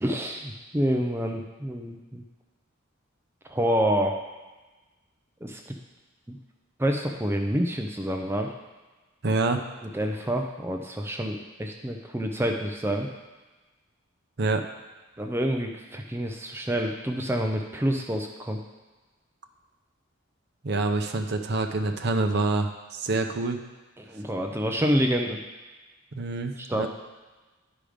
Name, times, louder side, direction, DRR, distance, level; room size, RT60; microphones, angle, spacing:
voice 1, 0.0-2.2 3.5-4.1 5.4-5.6 6.3-6.4 6.8-8.5 9.9-13.1 15.2-18.6 24.0-25.4 26.6-26.9, equal, 10° right, 2 dB, 0.5 m, -27 dB
voice 2, 9.2-9.6 14.4-14.6 20.6-23.6 26.1-26.9, right 3 dB, 50° right, 4 dB, 0.6 m, -26 dB
10.5 x 5.0 x 5.0 m, 1.2 s
head